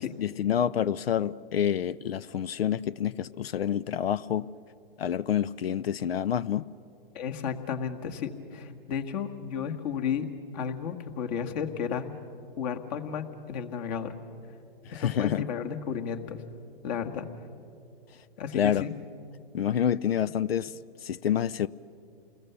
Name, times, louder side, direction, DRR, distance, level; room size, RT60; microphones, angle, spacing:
voice 1, 0.0-4.5 5.0-6.7 14.8-15.5 18.5-18.8 19.5-20.7 21.0-21.7, left 9 dB, 80° left, 0.6 m, -28 dB
voice 2, 7.1-10.3 10.5-12.1 12.6-14.1 14.9-16.4 16.8-17.2 18.4-18.9, left 7 dB, 45° left, 1.8 m, -33 dB
28.5 x 21.0 x 6.9 m
hypercardioid pair, 125°, 30 cm